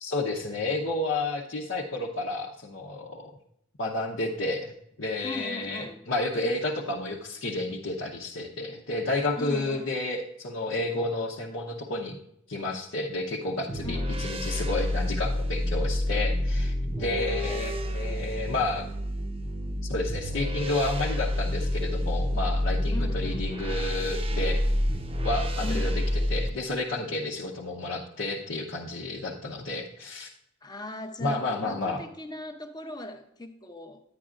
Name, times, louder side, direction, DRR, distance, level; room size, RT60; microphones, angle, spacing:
voice 1, 0.0-3.3 3.8-4.7 5.0-12.2 12.5-18.9 19.9-24.6 25.2-26.0 26.3-30.3 31.2-32.0, left 2 dB, 65° left, -3 dB, 0.8 m, -31 dB
voice 2, 5.2-6.0 9.4-9.9 13.8-14.2 17.0-18.3 22.9-23.5 25.6-26.0 30.6-34.0, left 1 dB, 20° left, 6 dB, 0.7 m, -38 dB
sound 1, 13.7-26.5, left 1 dB, 25° right, 0.7 m, -28 dB
9.8 x 9.8 x 2.5 m, 0.75 s
head